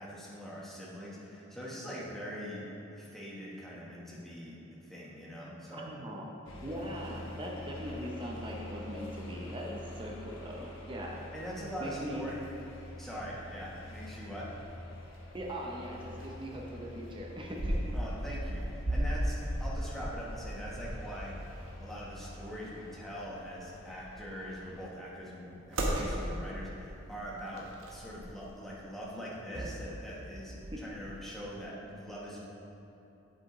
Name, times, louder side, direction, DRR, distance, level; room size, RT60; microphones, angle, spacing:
voice 1, 0.0-2.6 2.9-5.9 11.3-12.4 13.0-14.5 17.9-21.4 21.8-32.4, equal, ahead, -6 dB, 1.1 m, -43 dB
voice 2, 5.7-6.3 6.6-11.2 11.8-12.2 15.3-17.7 30.7-30.8, equal, 25° right, -2 dB, 0.6 m, -40 dB
sound 1, 6.4-24.9, left 1 dB, 80° left, 1.1 m, -47 dB
sound 2, 12.2-31.4, equal, 70° right, 1.0 m, -39 dB
8.2 x 7.5 x 3.0 m, 2.9 s
head